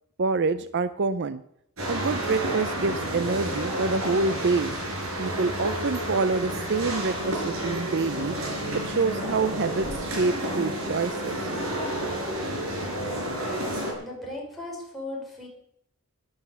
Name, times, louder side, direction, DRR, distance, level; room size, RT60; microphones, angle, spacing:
voice 1, 0.2-1.4 1.9-4.7 5.2-8.4 8.7-11.5, right 4 dB, 55° right, 13 dB, 0.5 m, -26 dB
sound 1, 1.8-13.9, right 1 dB, 70° right, 5.4 m, -30 dB
voice 2, 13.9-15.5, left 2 dB, ahead, -4 dB, 5.5 m, -37 dB
12.5 x 10.5 x 7.0 m, 0.76 s
head